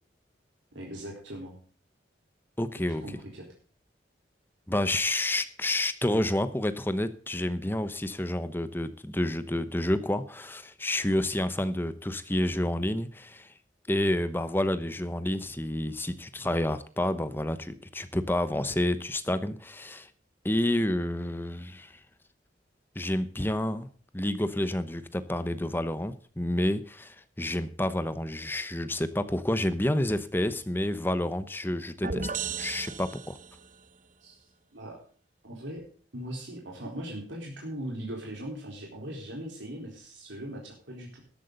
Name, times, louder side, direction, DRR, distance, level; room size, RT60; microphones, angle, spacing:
voice 1, 0.7-1.6 3.0-3.5 34.2-35.0 35.4-35.8 36.1-41.2, right 1 dB, 80° right, -1 dB, 4.1 m, -39 dB
voice 2, 2.6-3.0 4.7-13.5 13.9-20.1 20.4-22.0 22.9-23.9 24.1-32.3 32.6-33.4, left 1 dB, 10° left, 12 dB, 0.9 m, -29 dB
sound 1, 32.0-33.7, right 5 dB, 45° right, 0.8 m, -35 dB
13.5 x 12.0 x 4.0 m, 0.43 s
head